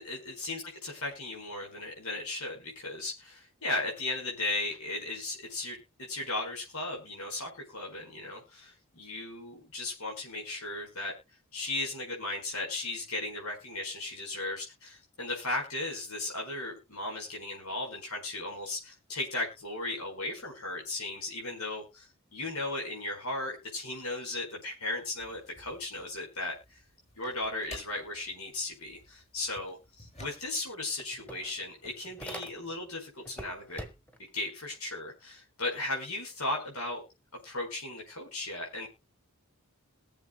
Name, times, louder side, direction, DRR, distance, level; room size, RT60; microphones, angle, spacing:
voice 1, 0.0-11.1 11.5-26.5 27.2-29.8 30.2-33.9 34.3-37.0 37.4-38.9, left 2 dB, 90° left, 0 dB, 4.5 m, -36 dB
sound 1, 25.0-30.7, left 2 dB, 30° left, 6.6 m, -53 dB
sound 2, 30.3-30.4 30.6-32.9 33.2-34.3, equal, 5° left, 1.3 m, -45 dB
21.5 x 7.2 x 2.2 m, 0.25 s
head